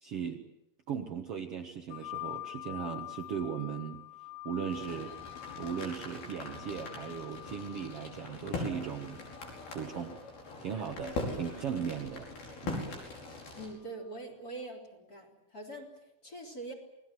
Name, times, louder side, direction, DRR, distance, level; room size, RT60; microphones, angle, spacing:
voice 1, 0.0-0.4 0.9-4.0 4.4-5.1 5.5-9.2 9.7-10.2 10.6-12.3 12.6-12.9, right 7 dB, 75° right, 4 dB, 1.3 m, -37 dB
sound 1, 1.9-10.3 11.3-12.2, left 19 dB, 80° left, 4.0 m, -46 dB
sound 2, 4.7-13.7, left 2 dB, 60° left, 7.0 m, -41 dB
voice 2, 13.6-16.7, right 2 dB, 25° left, 3 dB, 3.6 m, -44 dB
28.5 x 20.5 x 7.7 m, 0.88 s
omnidirectional pair, 4.8 m